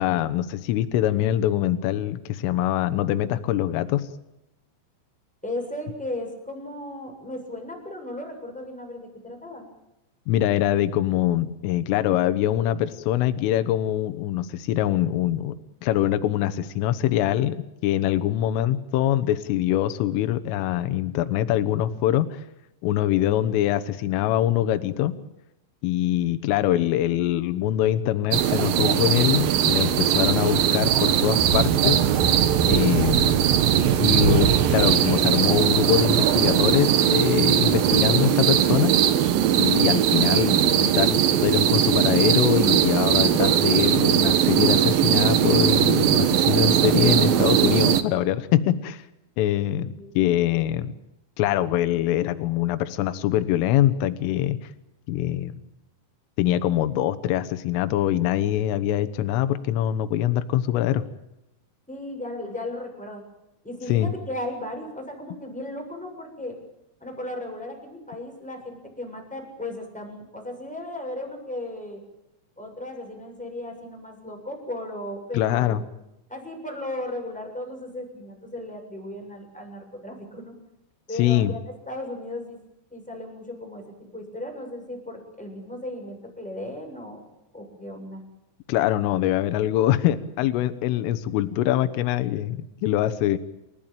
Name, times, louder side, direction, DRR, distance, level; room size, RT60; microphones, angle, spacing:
voice 1, 0.0-4.1 10.3-15.6 15.8-17.6 17.8-22.4 22.8-25.1 25.8-32.0 32.7-33.4 34.0-39.0 39.6-49.0 49.4-50.9 51.4-54.6 55.1-55.6 56.4-61.0 63.9-64.1 75.3-75.8 81.2-81.5 88.7-93.4, left 12 dB, 85° left, 11 dB, 3.6 m, -23 dB
voice 2, 5.4-9.7 50.0-50.1 61.9-63.2 63.6-66.5 67.0-72.0 72.6-75.8 76.3-80.5 81.1-82.6 82.9-87.2 87.5-88.2, left 1 dB, ahead, 2 dB, 7.0 m, -36 dB
sound 1, 28.3-48.0, right 10 dB, 70° right, 2.3 m, -20 dB
29.0 x 15.5 x 9.1 m, 0.89 s
omnidirectional pair, 5.7 m